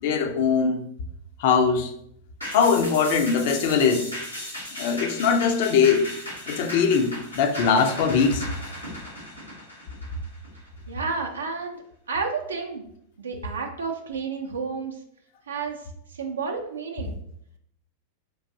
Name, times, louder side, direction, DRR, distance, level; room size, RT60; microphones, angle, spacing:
voice 1, 0.0-0.9 1.4-1.9 2.5-4.1 4.8-6.1 6.5-8.5, left 6 dB, 50° left, 7 dB, 0.4 m, -21 dB
sound 1, 2.4-11.1 11.5-11.6, left 1 dB, 85° left, 1.2 m, -37 dB
voice 2, 10.9-11.8 12.1-12.8 13.2-14.9 15.5-15.8 16.2-17.1, right 4 dB, 70° right, 3 dB, 0.4 m, -31 dB
4.6 x 2.5 x 2.6 m, 0.71 s
figure-of-eight pair, 90°, 0 cm